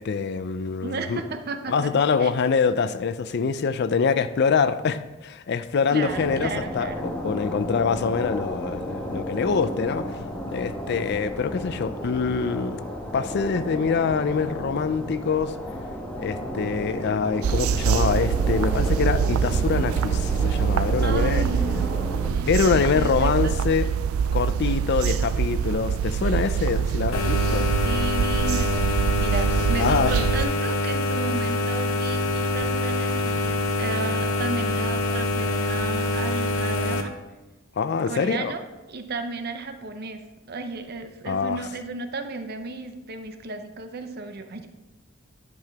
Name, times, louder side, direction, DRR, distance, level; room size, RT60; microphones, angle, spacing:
voice 1, 0.0-1.2 1.7-12.8 13.1-15.5 16.2-21.5 22.5-23.9 24.3-27.7 29.8-30.2 37.8-38.5 41.3-41.6, left 5 dB, 55° left, 0.4 m, -25 dB
voice 2, 0.8-1.9 2.2-2.3 5.9-7.1 21.0-23.6 27.6-37.1 38.1-38.6 38.9-44.7, right 3 dB, 50° right, 0.7 m, -33 dB
sound 1, 6.0-22.3, equal, 5° left, 1.1 m, -33 dB
sound 2, 17.4-30.5, right 7 dB, 85° right, 0.3 m, -24 dB
sound 3, 27.1-37.0, left 2 dB, 85° left, 0.8 m, -25 dB
10.5 x 5.8 x 3.5 m
head